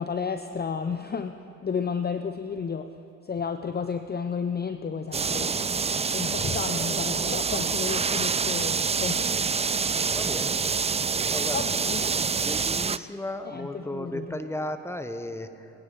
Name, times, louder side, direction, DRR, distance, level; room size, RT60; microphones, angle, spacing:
voice 1, 0.0-1.4 1.6-2.9 3.2-9.2 11.5-12.1 13.5-14.4, left 6 dB, 30° left, 9 dB, 0.6 m, -32 dB
sound 1, 5.1-13.0, right 5 dB, 20° right, 0.4 m, -26 dB
voice 2, 10.1-10.6 11.3-11.7 12.0-15.7, left 1 dB, 5° left, 9 dB, 1.1 m, -35 dB
22.0 x 9.7 x 5.4 m, 2.8 s
supercardioid pair, 50°, 34 cm